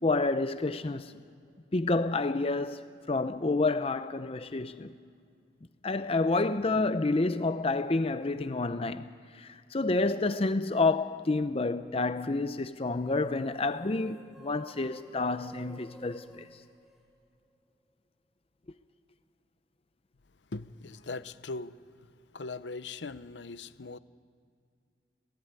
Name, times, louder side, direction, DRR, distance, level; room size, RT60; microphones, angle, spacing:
voice 1, 0.0-1.1 1.7-4.9 5.8-9.1 9.3-16.5, left 3 dB, 30° left, 0.6 m, -29 dB
sound 1, 12.9-17.6, left 2 dB, 5° right, 4.7 m, -54 dB
voice 2, 20.5-21.7 22.3-24.0, left 3 dB, 80° left, 0.8 m, -40 dB
30.0 x 17.5 x 9.6 m
head